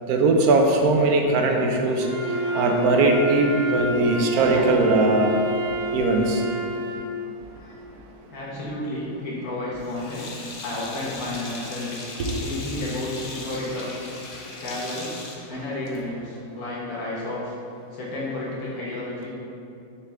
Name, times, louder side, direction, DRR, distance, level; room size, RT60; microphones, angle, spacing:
voice 1, 0.1-5.4 5.9-6.4 12.2-12.3, right 2 dB, 75° right, 2 dB, 1.2 m, -20 dB
Wind instrument woodwind instrument, 2.0-7.1, right 1 dB, 45° right, 1.0 m, -28 dB
voice 2, 8.3-10.4 10.6-11.9 12.4-14.0 14.6-17.5 17.9-19.3, left 1 dB, 65° left, -7 dB, 1.7 m, -32 dB
Sink (filling or washing), 9.8-16.2, left 3 dB, 50° left, 0.6 m, -38 dB
6.6 x 4.6 x 3.5 m, 2.6 s
omnidirectional pair, 1.7 m